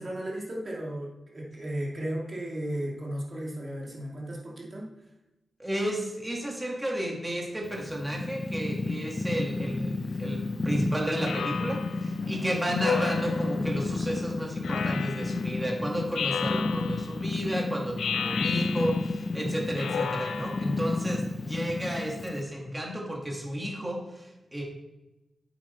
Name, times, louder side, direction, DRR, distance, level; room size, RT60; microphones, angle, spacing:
voice 1, 0.0-4.9 12.2-12.5 19.4-19.6, right 1 dB, 35° right, -3 dB, 2.3 m, -35 dB
voice 2, 5.6-24.6, equal, 10° right, -1 dB, 1.9 m, -32 dB
Purr, 7.6-22.4, left 2 dB, 30° left, 0.5 m, -32 dB
Speech synthesizer, 11.3-12.1 12.8-13.7 14.6-15.5 16.1-17.2 18.0-19.2 19.8-20.8, left 7 dB, 90° left, 0.5 m, -33 dB
8.4 x 6.7 x 4.4 m, 0.98 s
wide cardioid pair, 120°, 0 cm